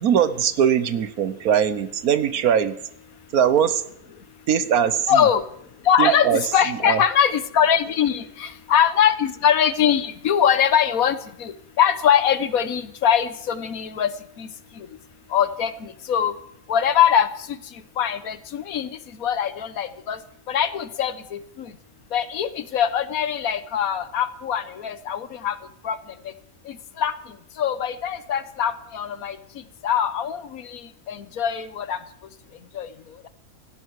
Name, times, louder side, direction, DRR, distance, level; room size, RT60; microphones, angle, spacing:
voice 1, 0.0-2.8 3.3-3.8 4.5-5.3 6.0-6.4 6.7-7.0, right 8 dB, 80° right, 13 dB, 1.4 m, -21 dB
voice 2, 5.1-5.4 5.8-14.1 14.4-14.5 14.8-14.9 15.3-16.3 16.7-17.6 18.0-18.9 19.2-20.2 20.5-21.7 22.1-25.6 25.8-26.0 26.7-27.1 27.6-29.4 29.8-32.0 32.7-32.9, left 8 dB, 75° left, 13 dB, 1.4 m, -22 dB
17.5 x 15.5 x 4.7 m, 0.70 s
omnidirectional pair, 1.5 m